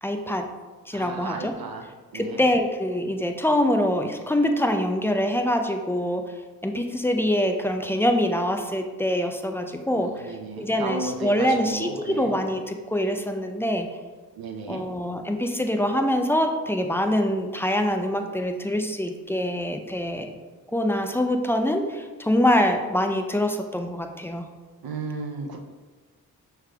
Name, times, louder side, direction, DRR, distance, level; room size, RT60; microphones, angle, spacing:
voice 1, 0.0-0.4 0.9-1.5 2.1-6.2 6.6-13.9 14.7-20.3 20.7-24.5, left 1 dB, 5° left, 5 dB, 0.4 m, -24 dB
voice 2, 0.9-1.8 2.1-2.4 9.9-12.3 14.4-14.8 24.8-25.6, right 3 dB, 70° right, 4 dB, 0.7 m, -34 dB
6.0 x 3.4 x 2.2 m, 1.3 s
cardioid pair, 60°, 38 cm